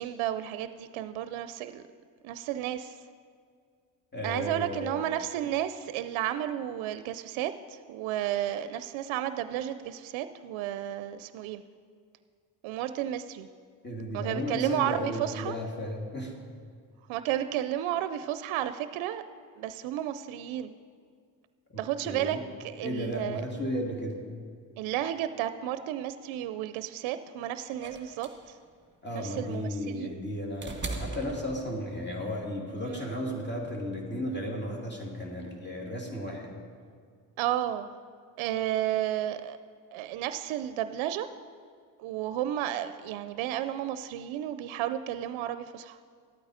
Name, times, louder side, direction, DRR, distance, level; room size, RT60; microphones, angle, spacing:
voice 1, 0.0-1.8 2.2-3.0 4.2-11.6 12.6-13.5 14.1-15.6 17.1-19.2 19.6-20.7 21.8-23.4 24.8-28.6 29.1-30.2 32.9-33.2 37.4-37.9 38.4-39.6 39.9-41.3 42.0-46.0, right 12 dB, 80° right, 12 dB, 0.5 m, -32 dB
voice 2, 4.1-5.0 13.8-16.3 21.7-22.4 22.8-24.2 29.0-36.5, equal, 20° left, -1 dB, 2.7 m, -34 dB
sound 1, 27.8-32.1 33.3-33.4, right 3 dB, 25° right, 1.7 m, -40 dB
12.5 x 8.7 x 4.9 m, 2.1 s
supercardioid pair, 55°, 47 cm